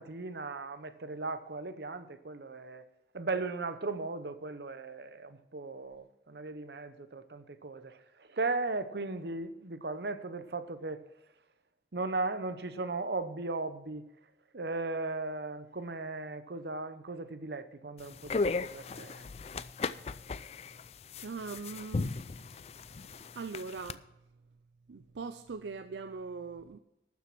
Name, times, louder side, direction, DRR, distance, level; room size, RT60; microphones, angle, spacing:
voice 1, 0.0-2.8 3.1-11.0 11.9-14.1 14.5-19.3, right 3 dB, 70° right, 0.8 m, -37 dB
sound 1, 18.0-23.9, left 3 dB, 35° left, 0.3 m, -36 dB
voice 2, 21.2-22.2 23.4-24.0 24.9-26.8, right 4 dB, 90° right, 0.5 m, -41 dB
12.5 x 7.1 x 6.0 m
head